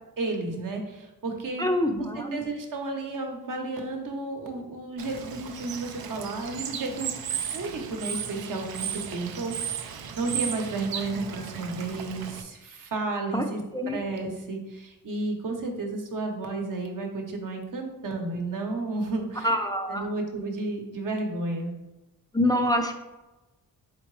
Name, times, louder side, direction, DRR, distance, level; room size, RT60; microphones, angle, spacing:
voice 1, 0.2-1.6 2.1-7.1 7.5-19.5 19.9-21.7, right 3 dB, 65° right, 2 dB, 0.9 m, -32 dB
voice 2, 1.6-2.4 13.3-13.4 13.7-14.0 19.4-20.1 22.3-22.9, left 1 dB, 10° left, 3 dB, 0.3 m, -25 dB
Bird / Water, 5.0-12.4, right 8 dB, 90° right, 0.5 m, -35 dB
4.3 x 3.7 x 3.1 m, 1.0 s
cardioid pair, 80°, 35 cm